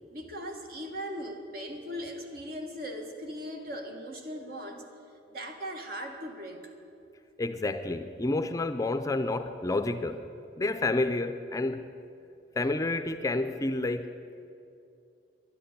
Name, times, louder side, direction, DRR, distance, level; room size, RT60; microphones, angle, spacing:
voice 1, 0.1-4.9 5.3-6.7, equal, 55° right, 3 dB, 1.7 m, -39 dB
voice 2, 7.4-10.2 10.6-11.9 12.6-14.1, left 2 dB, 20° left, 9 dB, 0.5 m, -29 dB
11.5 x 10.5 x 10.0 m, 2.6 s
head